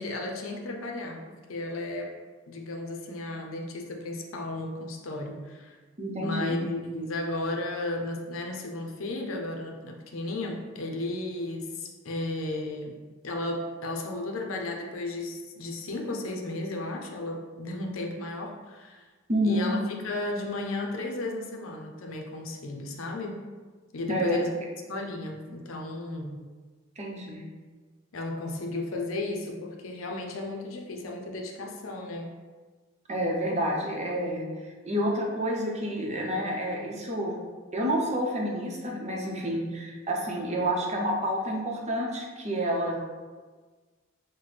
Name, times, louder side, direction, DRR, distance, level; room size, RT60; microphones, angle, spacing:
voice 1, 0.0-2.1 2.5-5.8 6.2-19.0 19.4-19.8 20.0-23.4 23.9-24.5 24.9-26.5 28.1-32.3, left 2 dB, 85° left, 2 dB, 0.6 m, -34 dB
voice 2, 6.0-6.6 19.3-19.8 24.1-24.4 27.0-27.4 33.1-37.3 37.7-42.9, equal, 35° right, -1 dB, 0.7 m, -29 dB
5.9 x 2.1 x 3.2 m, 1.4 s
head